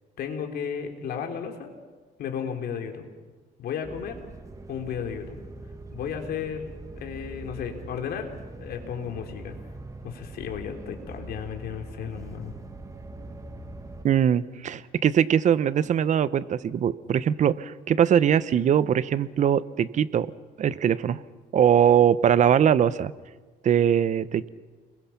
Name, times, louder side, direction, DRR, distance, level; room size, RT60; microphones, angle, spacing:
voice 1, 0.2-1.7 2.2-3.1 3.6-4.2 4.7-5.4 5.9-8.3 8.6-9.6 10.0-12.5, left 7 dB, 65° left, 4 dB, 3.4 m, -34 dB
sound 1, 3.8-14.1, right 2 dB, 20° right, 1.5 m, -42 dB
voice 2, 14.0-20.3 20.6-21.2 21.5-23.1 23.6-24.5, right 9 dB, 45° right, 16 dB, 0.9 m, -21 dB
30.0 x 22.0 x 5.9 m, 1.4 s
cardioid pair, 110°, 17 cm